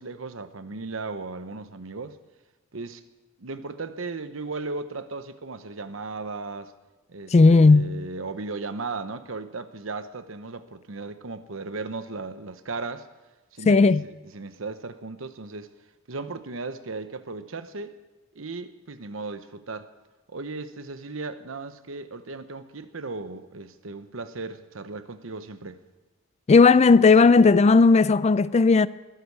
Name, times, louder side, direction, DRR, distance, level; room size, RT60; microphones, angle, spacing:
voice 1, 0.0-2.2 2.7-3.0 3.4-6.7 7.1-13.1 13.5-15.7 16.1-17.9 18.3-19.9 20.3-25.8, right 3 dB, 75° right, 1.0 m, -36 dB
voice 2, 7.3-7.9 13.7-14.0 26.5-28.9, left 4 dB, 35° left, 0.4 m, -15 dB
20.5 x 14.0 x 4.8 m
head